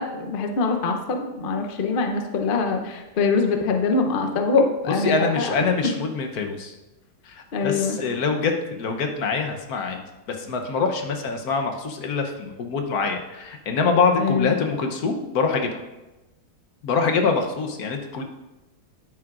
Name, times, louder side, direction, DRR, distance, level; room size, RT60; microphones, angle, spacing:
voice 1, 0.0-5.5 7.5-8.0 14.2-14.6, left 4 dB, 85° left, 4 dB, 0.4 m, -23 dB
voice 2, 5.0-6.7 7.2-10.0 10.3-15.8 16.8-18.2, left 4 dB, 60° left, 4 dB, 1.2 m, -24 dB
9.7 x 9.3 x 2.5 m, 1.0 s
omnidirectional pair, 2.1 m